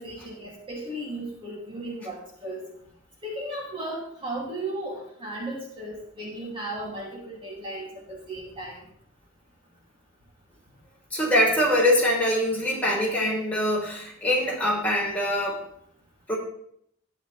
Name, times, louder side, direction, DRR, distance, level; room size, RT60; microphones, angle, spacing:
voice 1, 0.0-2.6 3.2-8.8, right 1 dB, 25° right, -4 dB, 2.6 m, -35 dB
voice 2, 11.1-15.6 16.3-16.4, left 1 dB, 10° left, -5 dB, 3.7 m, -23 dB
13.0 x 10.5 x 3.3 m, 0.69 s
head